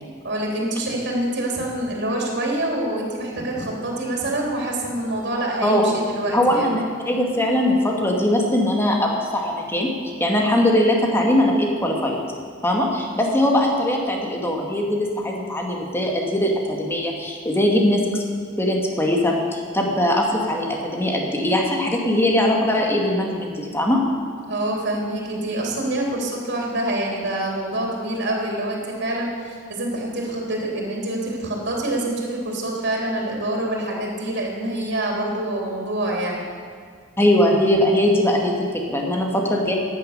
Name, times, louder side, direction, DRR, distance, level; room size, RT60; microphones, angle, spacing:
voice 1, 0.2-6.7 13.2-13.3 24.5-36.4, right 1 dB, 60° right, -1 dB, 3.3 m, -26 dB
voice 2, 6.3-9.9 10.2-12.2 12.6-18.2 18.6-24.0 37.2-39.8, left 1 dB, 10° left, 0 dB, 2.1 m, -21 dB
14.5 x 9.9 x 6.7 m, 2.1 s
head